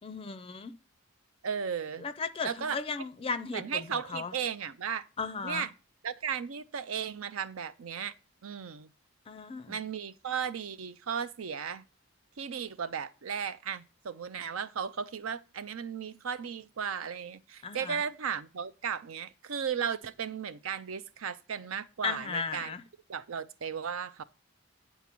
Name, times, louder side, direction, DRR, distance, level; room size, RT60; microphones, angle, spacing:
voice 1, 0.0-0.7 2.0-4.3 5.2-5.7 9.3-9.8 17.6-18.0 22.0-22.8, left 4 dB, 25° left, 0.4 m, -36 dB
voice 2, 1.4-2.0 2.4-2.8 3.5-5.1 5.4-5.7 6.0-8.1 8.4-8.9 9.7-11.8 12.4-22.8 23.1-24.2, right 7 dB, 85° right, 0.5 m, -35 dB
9.7 x 4.1 x 6.0 m
head